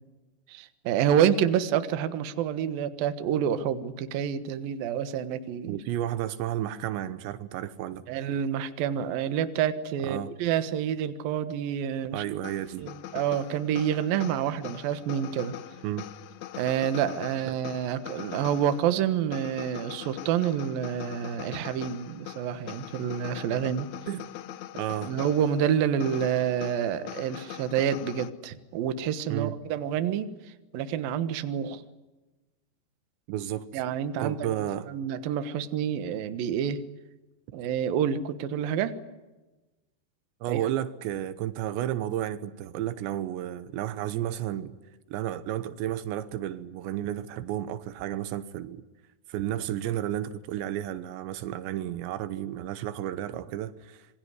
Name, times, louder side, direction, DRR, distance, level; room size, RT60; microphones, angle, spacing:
voice 1, 0.5-5.8 8.1-12.2 12.8-15.5 16.6-23.9 25.0-30.3 30.7-31.8 33.7-34.4 34.9-36.8 37.5-38.9 40.5-40.6, right 9 dB, 65° right, 2.8 m, -28 dB
voice 2, 5.7-8.0 10.0-10.3 12.1-12.9 15.8-16.0 17.5-17.6 24.1-24.2 24.8-25.1 29.3-29.5 33.3-33.8 34.2-34.9 40.4-44.8 45.1-48.8 49.3-54.1, right 12 dB, 85° right, 3.3 m, -32 dB
sound 1, 12.4-28.3, left 12 dB, 90° left, 1.6 m, -42 dB
26.5 x 23.0 x 9.7 m
omnidirectional pair, 5.0 m